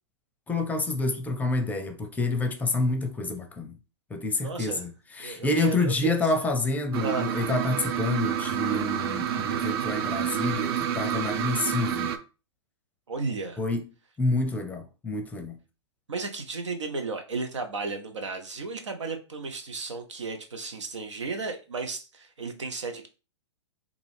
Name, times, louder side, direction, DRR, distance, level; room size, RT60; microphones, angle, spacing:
voice 1, 0.5-3.8 4.1-12.1 13.6-13.8 14.2-15.6, left 2 dB, 10° left, 0.6 m, -28 dB
voice 2, 4.4-4.8 5.2-6.1 7.0-7.3 13.1-13.6 16.1-23.1, right 3 dB, 90° right, 0.8 m, -34 dB
sound 1, 6.9-12.2, right 9 dB, 55° right, 0.5 m, -29 dB
3.6 x 2.5 x 3.4 m
hypercardioid pair, 120°, 15 cm